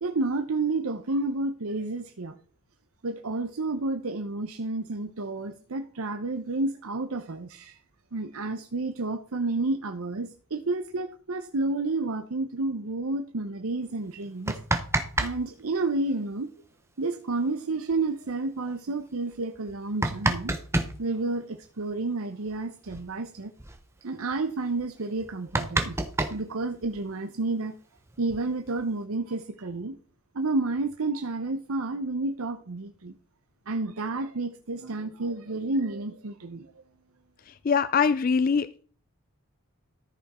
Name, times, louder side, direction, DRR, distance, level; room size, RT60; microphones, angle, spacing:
voice 1, 0.0-2.4 3.0-7.8 8.1-14.6 15.2-16.5 17.0-20.5 21.0-23.5 24.0-27.7 28.2-30.0 30.3-33.1 33.7-36.7, right 3 dB, 70° right, 0.8 m, -30 dB
sound 1, 14.3-15.3 15.6-15.7 17.5-17.6 17.9-18.0 18.6-18.7 19.5-20.9 22.5-22.6 22.9-23.1 23.4-23.8 24.3-24.4 24.8-24.9 25.2-27.1 28.0-28.8, right 2 dB, 10° right, 0.8 m, -28 dB
voice 2, 37.6-38.8, left 6 dB, 40° left, 0.3 m, -23 dB
13.5 x 6.0 x 4.2 m
head